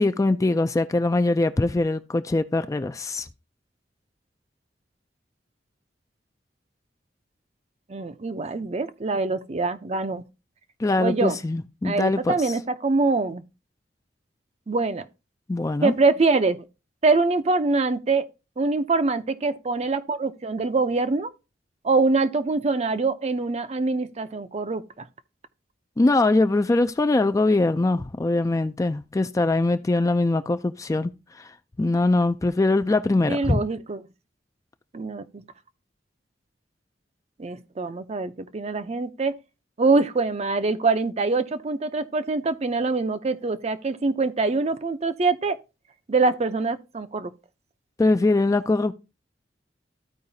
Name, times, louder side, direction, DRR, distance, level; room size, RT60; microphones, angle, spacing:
voice 1, 0.0-3.3 10.8-12.3 15.5-15.9 26.0-31.1 31.4-31.5 31.8-33.6 48.0-48.9, left 2 dB, 20° left, 0.3 m, -22 dB
voice 2, 7.9-10.2 11.0-11.4 11.8-13.4 14.7-15.0 15.8-16.6 17.0-18.3 18.6-21.3 21.8-25.1 33.3-34.0 34.9-35.4 37.4-39.3 39.8-45.6 46.1-47.3, right 3 dB, 35° right, 0.5 m, -24 dB
14.0 x 4.8 x 2.7 m
head